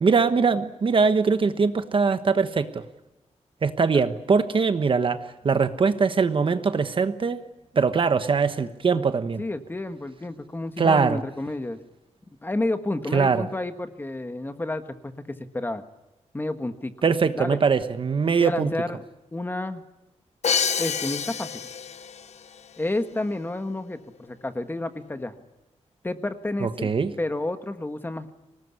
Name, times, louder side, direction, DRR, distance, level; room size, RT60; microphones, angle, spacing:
voice 1, 0.0-2.8 3.6-7.4 7.7-9.4 10.8-11.2 13.1-13.4 17.0-18.7 26.6-27.1, right 5 dB, 45° right, 10 dB, 1.2 m, -22 dB
voice 2, 9.4-11.8 12.4-15.8 16.3-16.9 17.4-17.6 18.4-19.0 19.3-19.8 20.8-21.6 22.8-25.3 26.0-26.9 27.2-28.3, left 2 dB, 15° left, 8 dB, 1.5 m, -30 dB
Crash cymbal, 20.4-22.3, left 6 dB, 70° left, 1.1 m, -27 dB
25.0 x 19.5 x 9.8 m, 0.97 s
wide cardioid pair, 175°, 12 cm